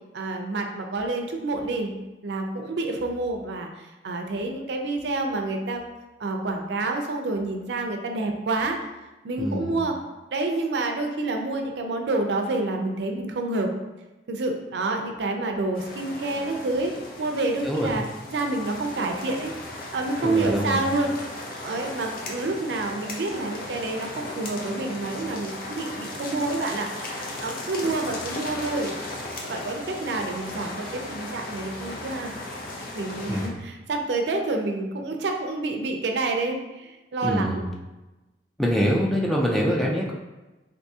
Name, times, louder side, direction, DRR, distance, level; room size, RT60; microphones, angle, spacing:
voice 1, 0.1-1.9 2.2-3.7 4.0-5.8 6.2-8.8 9.2-10.0 10.3-13.7 14.3-16.9 17.2-18.0 18.3-19.5 19.9-21.1 21.6-28.9 29.5-32.3 32.9-37.6 39.4-39.6, right 2 dB, 75° right, 3 dB, 0.4 m, -28 dB
voice 2, 9.4-9.8 17.6-18.1 20.2-20.9 33.3-33.5 37.2-37.7 38.6-40.1, equal, ahead, -3 dB, 0.4 m, -25 dB
sound 1, 15.7-33.5, left 2 dB, 55° left, 0.6 m, -36 dB
3.4 x 2.6 x 2.7 m, 1.1 s
head